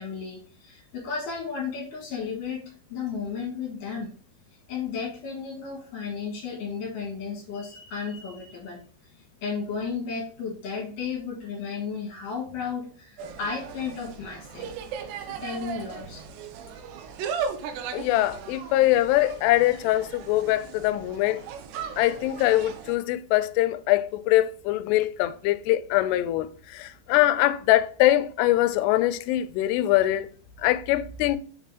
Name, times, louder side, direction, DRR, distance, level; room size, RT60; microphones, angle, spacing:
voice 1, 0.0-4.1 4.7-8.8 9.4-14.7 15.2-16.2, left 5 dB, 65° left, 2.9 m, -34 dB
Insect, 13.2-23.0, right 6 dB, 85° right, 3.0 m, -37 dB
voice 2, 17.9-21.4 22.0-31.4, left 15 dB, 85° left, 2.6 m, -23 dB
7.3 x 7.0 x 2.4 m
omnidirectional pair, 4.7 m